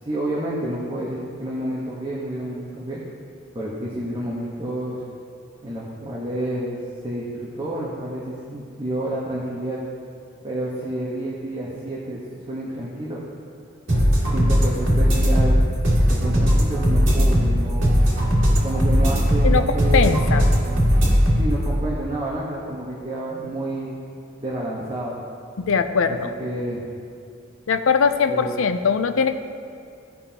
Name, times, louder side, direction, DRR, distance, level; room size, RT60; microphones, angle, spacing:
voice 1, 0.0-3.0 3.5-5.0 5.6-9.8 10.4-12.2 12.5-13.3 14.3-15.6 16.1-18.0 18.6-20.3 21.4-23.9 24.4-25.2 26.0-26.8 28.3-28.5, right 1 dB, 25° right, -6 dB, 1.1 m, -29 dB
sound 1, 13.9-21.6, equal, 75° right, 2.1 m, -18 dB
voice 2, 19.4-20.5 25.6-26.3 27.7-29.4, left 5 dB, 90° left, 9 dB, 0.5 m, -21 dB
16.0 x 5.4 x 2.9 m, 2.4 s
head